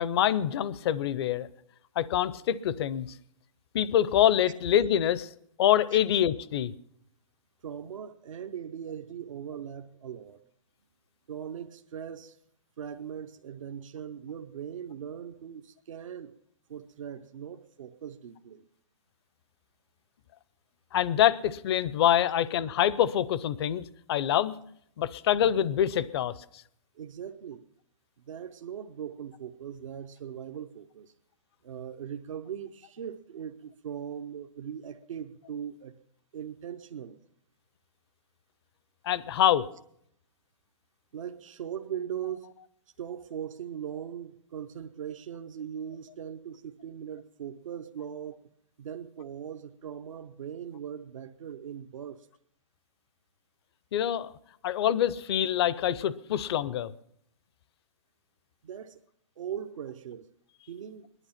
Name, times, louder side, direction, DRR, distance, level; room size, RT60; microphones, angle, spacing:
voice 1, 0.0-1.5 2.0-3.1 3.7-5.3 5.6-6.7 20.9-24.5 25.0-26.4 39.0-39.7 53.9-54.3 54.6-56.9, left 10 dB, 55° left, 19 dB, 0.6 m, -25 dB
voice 2, 7.6-10.4 11.3-12.4 12.8-16.3 16.7-18.6 26.9-27.6 28.2-31.1 31.6-36.0 36.3-37.2 41.1-42.5 43.0-48.4 48.8-52.3 58.6-59.0 59.4-60.3 60.7-61.1, right 9 dB, 80° right, 6 dB, 0.8 m, -40 dB
19.5 x 11.0 x 5.8 m, 0.73 s
hypercardioid pair, 145°, 16 cm